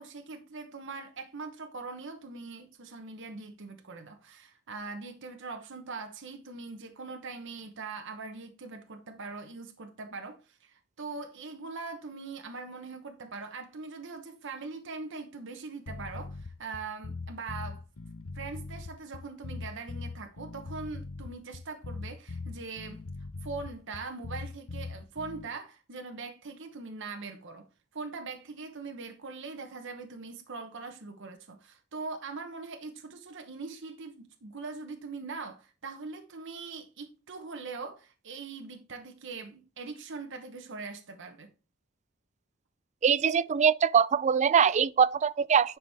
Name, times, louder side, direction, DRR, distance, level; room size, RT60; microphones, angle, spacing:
voice 1, 0.0-17.8 18.3-23.0 23.4-27.7 27.9-41.5, right 4 dB, 60° right, 1.0 m, -41 dB
sound 1, 15.9-25.5, left 3 dB, 80° left, 0.8 m, -40 dB
voice 2, 43.0-45.8, right 7 dB, 35° right, 0.3 m, -23 dB
9.9 x 6.0 x 3.5 m
head